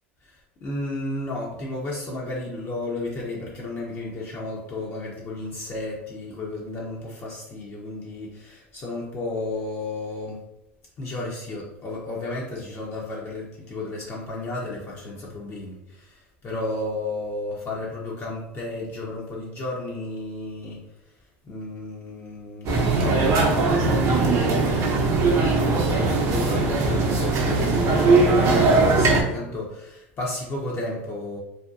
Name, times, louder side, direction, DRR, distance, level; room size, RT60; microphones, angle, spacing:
voice 1, 0.2-10.4 11.0-20.8 21.4-24.9 25.3-31.4, left 2 dB, 40° left, -4 dB, 0.7 m, -33 dB
sound 1, 22.7-29.2, right 3 dB, 50° right, 0.7 m, -20 dB
2.7 x 2.1 x 2.4 m, 0.87 s
hypercardioid pair, 85°, 7 cm